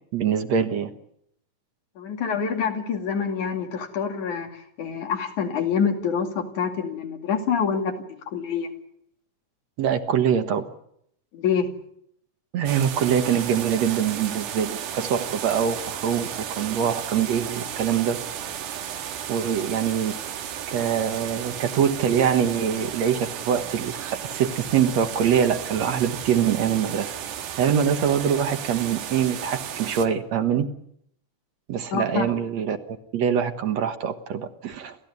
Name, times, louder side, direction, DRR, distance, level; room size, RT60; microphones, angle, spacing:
voice 1, 0.1-0.9 9.8-10.7 12.5-18.2 19.3-20.1 20.7-27.1 27.6-30.7 31.7-35.0, right 8 dB, 65° right, 8 dB, 2.5 m, -24 dB
voice 2, 2.0-8.7 11.3-11.7 31.9-32.3, left 6 dB, 75° left, 4 dB, 3.9 m, -26 dB
sound 1, 12.7-30.1, right 9 dB, 85° right, 3.0 m, -34 dB
29.0 x 14.5 x 9.6 m, 0.73 s
omnidirectional pair, 3.5 m